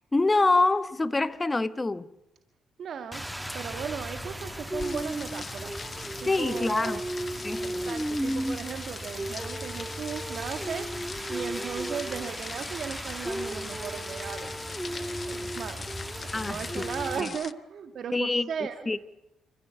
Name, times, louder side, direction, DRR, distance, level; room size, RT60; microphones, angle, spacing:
voice 1, 0.0-2.1 6.3-7.0 7.4-7.9 16.3-16.8 17.2-17.3 18.1-18.5 18.9-19.0, left 3 dB, 20° left, 1.1 m, -26 dB
voice 2, 2.8-3.2 3.5-5.7 6.2-7.0 7.6-11.0 11.3-15.8 16.2-18.9, right 7 dB, 60° right, 1.9 m, -37 dB
Rain, 3.1-17.2, right 1 dB, 5° right, 1.3 m, -35 dB
sound 1, 4.8-17.5, left 5 dB, 40° left, 0.7 m, -42 dB
27.0 x 15.0 x 8.3 m
cardioid pair, 90°, 0 cm